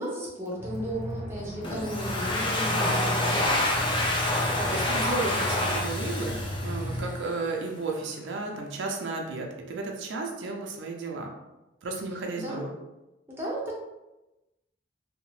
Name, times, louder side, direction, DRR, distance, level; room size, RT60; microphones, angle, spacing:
voice 1, 0.0-3.7 12.3-12.7 13.3-13.8, equal, 15° right, -5 dB, 0.8 m, -35 dB
Aircraft, 0.6-7.1, equal, 55° left, 1.1 m, -34 dB
Domestic sounds home sounds, 1.6-7.3, left 1 dB, 25° left, 0.4 m, -28 dB
voice 2, 4.7-11.3 11.8-12.7, right 3 dB, 90° right, 1 dB, 0.5 m, -34 dB
2.8 x 2.1 x 3.0 m, 1.0 s
head